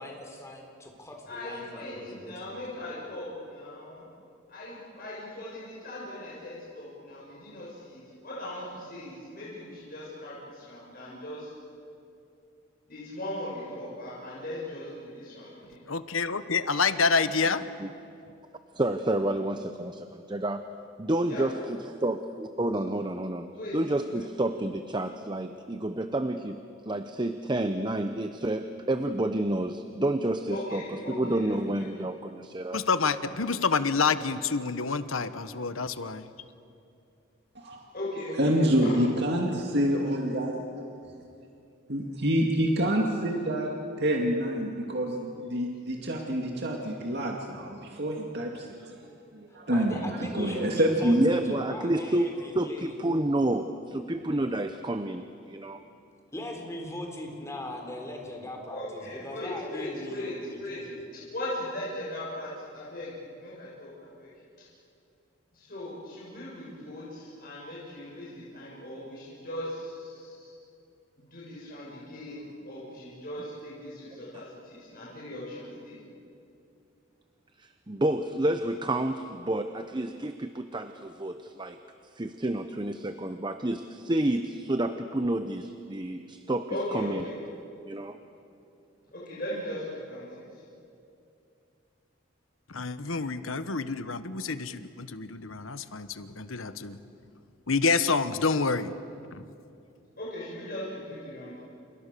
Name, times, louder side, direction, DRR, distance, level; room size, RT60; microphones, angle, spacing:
voice 1, 0.0-2.8 49.5-53.0 56.3-61.0, left 1 dB, 15° left, 2 dB, 4.1 m, -40 dB
voice 2, 1.3-4.1 4.5-11.5 12.9-15.8 21.3-21.4 23.5-23.7 24.0-24.1 30.5-31.6 37.9-38.9 58.7-60.3 60.6-60.8 61.3-63.1 63.4-64.3 65.7-70.3 71.3-76.0 86.7-87.3 89.1-90.3 100.2-101.6, left 1 dB, 45° left, -7 dB, 6.7 m, -38 dB
voice 3, 15.9-17.7 32.7-36.3 92.7-97.0 97.7-98.9 99.3-99.4, left 4 dB, 90° left, 12 dB, 1.2 m, -28 dB
voice 4, 18.7-20.6 21.0-32.8 51.0-55.8 74.3-74.4 77.6-81.8 82.2-87.3 87.9-88.2, right 1 dB, 25° right, 8 dB, 0.8 m, -29 dB
voice 5, 38.3-40.5 41.9-43.7 44.0-48.9 49.3-51.6, equal, 55° right, 0 dB, 2.3 m, -27 dB
30.0 x 28.5 x 6.9 m, 2.6 s
head